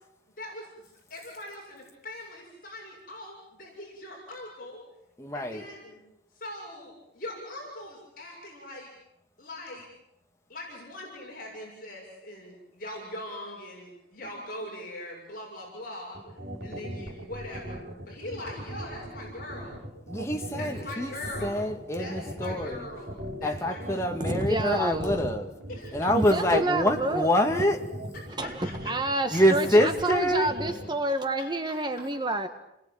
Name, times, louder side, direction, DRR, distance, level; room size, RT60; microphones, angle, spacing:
voice 1, 0.4-0.7 1.1-4.8 5.3-6.0 6.3-8.9 9.4-9.9 10.5-16.2 16.6-17.8 18.1-19.8 20.6-21.5 22.0-24.0 25.7-26.1 26.5-26.6 28.6-28.9 30.5-30.6 31.0-31.1 31.6-31.7, left 1 dB, 50° left, 6.9 m, -41 dB
voice 2, 5.2-5.7 20.1-21.1 21.4-22.9 23.4-25.5 25.9-27.8 29.3-30.5, equal, 15° left, 2.3 m, -25 dB
sound 1, 16.1-30.9, equal, 60° right, 6.3 m, -38 dB
voice 3, 24.2-25.3 26.1-27.3 28.4-32.5, right 1 dB, 25° right, 1.6 m, -29 dB
30.0 x 21.0 x 9.2 m
head